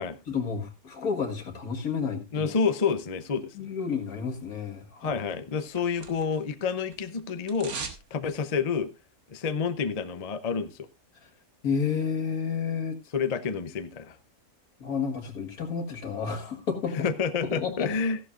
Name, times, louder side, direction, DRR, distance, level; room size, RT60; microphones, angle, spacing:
voice 1, 0.3-2.5 3.5-5.2 11.2-11.3 11.6-13.0 14.8-17.1 17.4-17.9, left 6 dB, 75° left, 2.2 m, -31 dB
voice 2, 2.3-3.5 5.0-7.7 8.1-8.9 9.3-10.9 13.1-14.2 17.0-18.2, left 5 dB, 35° left, 0.7 m, -28 dB
sound 1, 5.3-6.5 6.8-8.1 8.4-8.5, right 5 dB, 70° right, 2.0 m, -40 dB
14.5 x 11.5 x 2.5 m
omnidirectional pair, 1.6 m